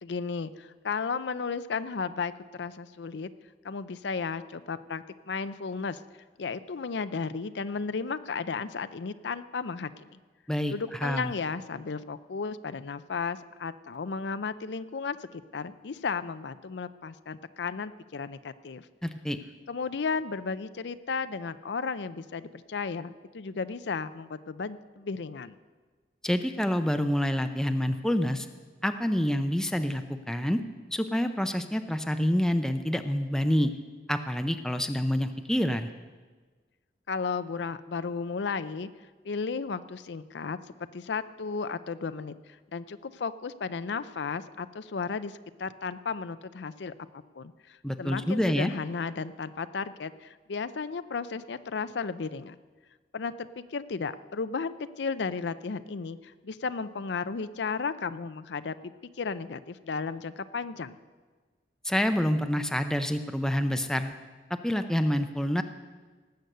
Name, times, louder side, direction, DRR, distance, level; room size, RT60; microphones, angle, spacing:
voice 1, 0.0-3.3 3.6-6.0 6.4-10.2 10.7-18.9 19.7-25.6 37.1-38.9 39.2-40.6 40.9-52.6 53.1-58.9 59.2-61.0, left 5 dB, 75° left, 13 dB, 0.5 m, -34 dB
voice 2, 11.0-11.3 19.0-19.4 26.2-28.5 28.8-30.6 30.9-33.7 34.1-35.9 47.8-48.7 61.8-64.1 64.5-65.6, equal, 5° left, 7 dB, 0.6 m, -27 dB
18.0 x 8.0 x 6.7 m, 1.4 s
head